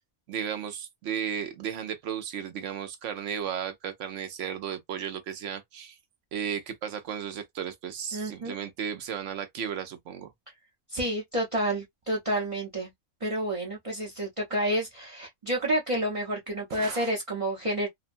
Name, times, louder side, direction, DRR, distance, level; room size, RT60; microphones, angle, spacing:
voice 1, 0.3-6.0 6.3-10.3 16.7-17.1, right 8 dB, 65° right, 0.9 m, -34 dB
voice 2, 8.1-8.6 10.9-12.9 13.2-17.9, right 1 dB, 30° right, 0.7 m, -29 dB
2.8 x 2.1 x 2.5 m
omnidirectional pair, 1.6 m